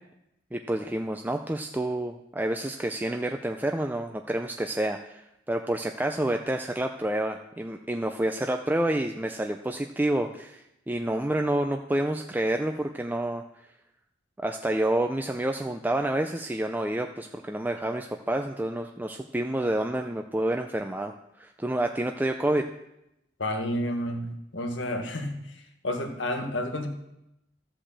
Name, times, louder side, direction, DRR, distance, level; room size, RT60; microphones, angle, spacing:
voice 1, 0.5-13.4 14.4-21.1 21.4-22.7, right 1 dB, 10° right, 5 dB, 0.4 m, -28 dB
voice 2, 23.4-25.5 25.8-26.9, left 1 dB, 80° left, 5 dB, 1.6 m, -30 dB
13.0 x 5.0 x 7.3 m, 0.86 s
head